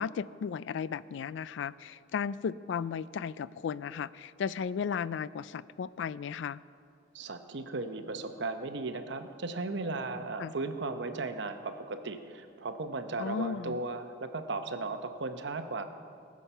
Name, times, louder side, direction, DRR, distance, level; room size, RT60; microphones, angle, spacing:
voice 1, 0.0-6.6 10.4-10.5 13.2-13.8, left 6 dB, 70° left, 18 dB, 0.3 m, -35 dB
voice 2, 7.1-15.8, right 3 dB, 65° right, 8 dB, 0.8 m, -36 dB
19.5 x 7.3 x 5.6 m, 2.5 s
head